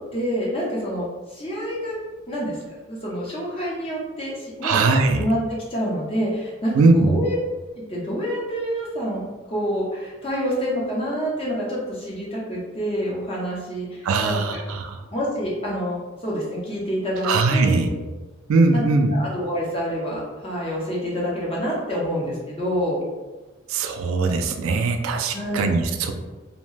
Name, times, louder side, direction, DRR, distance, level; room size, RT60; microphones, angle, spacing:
voice 1, 0.1-2.0 2.3-2.6 2.9-4.8 5.2-6.7 7.0-7.4 7.7-14.6 15.1-17.9 18.7-18.8 19.1-23.0 25.3-25.7, equal, 25° left, -5 dB, 0.7 m, -27 dB
voice 2, 4.6-5.2 6.7-7.1 14.0-15.0 17.2-17.9 18.5-19.1 23.7-26.1, right 3 dB, 85° right, 5 dB, 0.3 m, -20 dB
2.6 x 2.1 x 3.1 m, 1.2 s
head